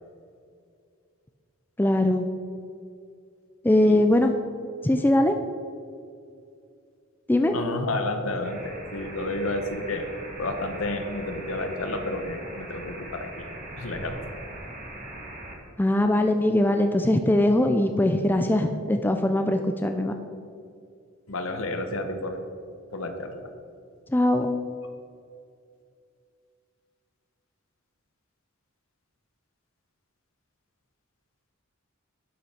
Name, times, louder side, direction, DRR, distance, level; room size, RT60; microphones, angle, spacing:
voice 1, 1.8-2.3 3.6-4.3 4.8-5.4 7.3-7.5 15.8-20.1 24.1-24.6, left 1 dB, 10° left, 6 dB, 0.4 m, -21 dB
voice 2, 7.5-10.1 10.4-13.5 13.7-14.3 21.3-22.4 22.9-23.5, left 2 dB, 70° left, 6 dB, 1.1 m, -31 dB
sound 1, 8.4-15.6, right 1 dB, 40° right, 1.7 m, -40 dB
11.5 x 5.5 x 5.8 m, 2.4 s
head